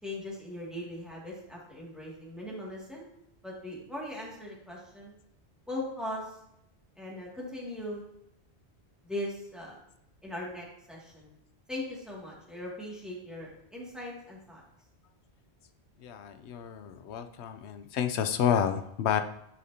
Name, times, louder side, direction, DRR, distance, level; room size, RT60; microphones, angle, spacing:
voice 1, 0.0-3.1 3.4-5.1 5.7-6.3 7.0-8.0 9.0-9.8 10.2-11.3 11.7-14.6, left 1 dB, ahead, -4 dB, 2.1 m, -39 dB
voice 2, 16.0-19.2, left 9 dB, 85° left, 8 dB, 0.9 m, -30 dB
11.5 x 5.0 x 2.8 m, 0.79 s
omnidirectional pair, 1.1 m